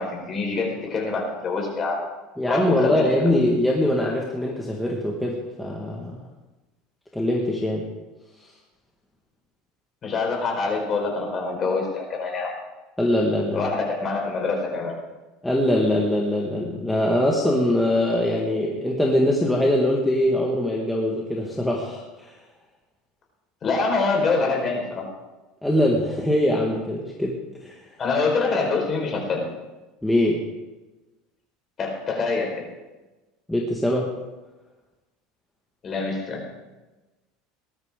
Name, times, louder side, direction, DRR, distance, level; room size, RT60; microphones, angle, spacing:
voice 1, 0.0-2.0 2.5-3.0 10.0-12.5 13.5-14.9 23.6-25.1 28.0-29.5 31.8-32.6 35.8-36.4, left 4 dB, 30° left, 0 dB, 4.5 m, -25 dB
voice 2, 2.4-6.1 7.1-7.9 8.4-8.5 13.0-13.7 15.4-22.4 25.6-27.9 30.0-30.5 33.5-34.1, left 1 dB, 5° left, -3 dB, 1.7 m, -23 dB
19.5 x 12.5 x 3.8 m, 1.1 s
cardioid pair, 150°, 0 cm